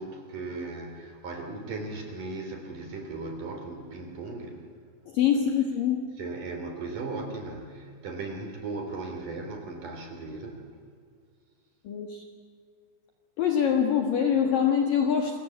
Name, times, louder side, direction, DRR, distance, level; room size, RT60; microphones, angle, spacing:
voice 1, 0.0-4.6 6.1-10.7, right 3 dB, 45° right, 4 dB, 4.3 m, -37 dB
voice 2, 5.1-6.0 11.8-12.2 13.4-15.4, left 8 dB, 60° left, 3 dB, 2.6 m, -24 dB
29.0 x 23.5 x 8.5 m, 2.1 s
omnidirectional pair, 5.8 m